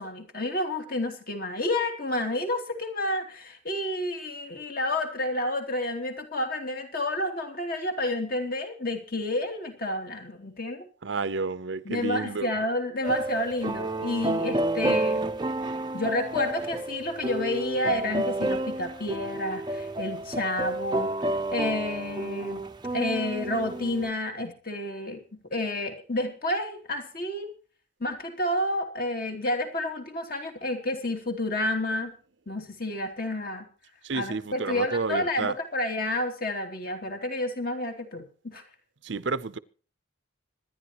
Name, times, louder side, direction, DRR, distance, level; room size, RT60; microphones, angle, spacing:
voice 1, 0.0-10.9 11.8-15.2 15.9-22.6 22.9-27.5 28.0-32.1 32.5-33.7 34.1-38.6, left 1 dB, 45° left, 2.8 m, -30 dB
voice 2, 11.0-12.5 34.0-35.5 39.0-39.6, right 4 dB, 65° right, 0.7 m, -30 dB
sound 1, 13.0-24.1, right 1 dB, 20° right, 0.7 m, -30 dB
25.5 x 10.5 x 3.0 m
head